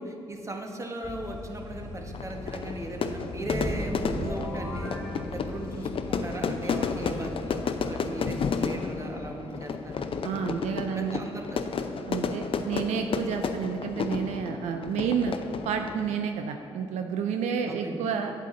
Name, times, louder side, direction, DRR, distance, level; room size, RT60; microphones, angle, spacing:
voice 1, 0.0-4.9 5.3-10.1 10.9-11.6 17.7-18.0, right 1 dB, 25° right, 2 dB, 1.2 m, -37 dB
sound 1, 1.0-8.1, left 2 dB, 30° left, 1.7 m, -42 dB
Fire / Fireworks, 2.1-16.2, left 5 dB, 50° left, 0.5 m, -32 dB
sound 2, 3.4-6.0, equal, 5° right, 1.7 m, -35 dB
voice 2, 10.2-11.2 12.1-15.3 15.6-18.3, right 7 dB, 80° right, 5 dB, 0.4 m, -30 dB
8.2 x 7.5 x 3.7 m, 2.8 s
supercardioid pair, 50°, 12 cm